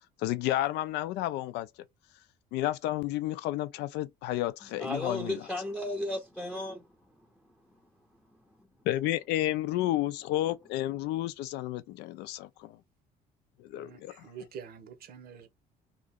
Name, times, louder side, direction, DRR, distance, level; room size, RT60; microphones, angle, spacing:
voice 1, 0.2-1.7 2.5-5.4 8.9-12.8 13.6-14.2, left 14 dB, 85° left, 0.4 m, -31 dB
voice 2, 4.8-6.8, left 1 dB, ahead, 0.6 m, -34 dB
voice 3, 13.8-15.5, right 7 dB, 65° right, 0.8 m, -46 dB
2.8 x 2.5 x 3.5 m
cardioid pair, 110°, 17 cm